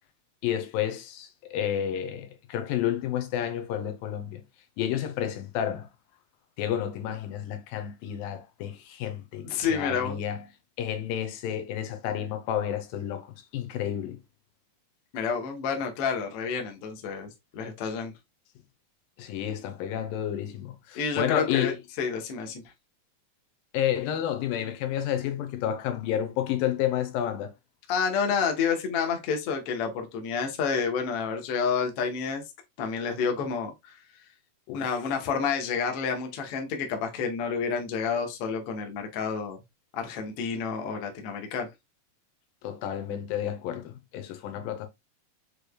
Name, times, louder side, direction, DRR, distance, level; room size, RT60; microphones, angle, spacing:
voice 1, 0.4-4.4 4.8-5.9 6.6-10.5 10.8-14.2 19.2-21.8 23.7-27.5 34.7-34.9 42.6-44.9, left 10 dB, 85° left, 2.5 m, -30 dB
voice 2, 9.4-10.2 15.1-18.1 20.9-22.6 27.9-32.4 32.8-34.0 34.7-39.6 39.9-41.7, left 6 dB, 65° left, 1.5 m, -29 dB
6.7 x 3.2 x 2.2 m
omnidirectional pair, 4.0 m